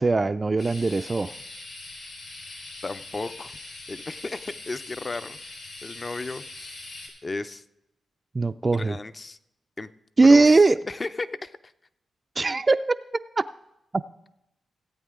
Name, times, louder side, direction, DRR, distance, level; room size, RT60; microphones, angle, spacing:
voice 1, 0.0-1.3 8.3-9.0 10.2-10.8 12.4-13.0 13.4-13.5, right 3 dB, 35° right, 10 dB, 0.3 m, -19 dB
sound 1, 0.6-7.1, left 2 dB, 75° left, 4.7 m, -42 dB
voice 2, 2.8-3.6 3.9-6.8 7.2-7.6 8.7-9.4 9.8-9.9 10.2-11.7, left 3 dB, 35° left, 13 dB, 0.6 m, -35 dB
17.0 x 8.5 x 3.7 m, 0.88 s
cardioid pair, 55°, 0 cm